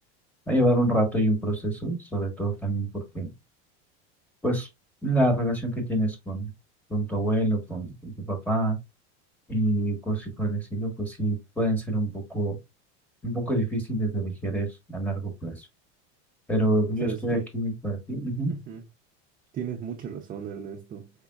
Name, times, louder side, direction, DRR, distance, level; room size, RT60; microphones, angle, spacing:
voice 1, 0.5-2.9 3.1-3.3 4.4-4.7 5.0-6.5 6.9-8.8 9.5-12.6 13.2-15.7 16.5-18.6, right 1 dB, 5° left, 1.3 m, -26 dB
voice 2, 17.0-17.4 18.5-18.8 19.5-21.1, right 7 dB, 25° right, 0.5 m, -35 dB
5.1 x 3.6 x 2.3 m
supercardioid pair, 135°, 35 cm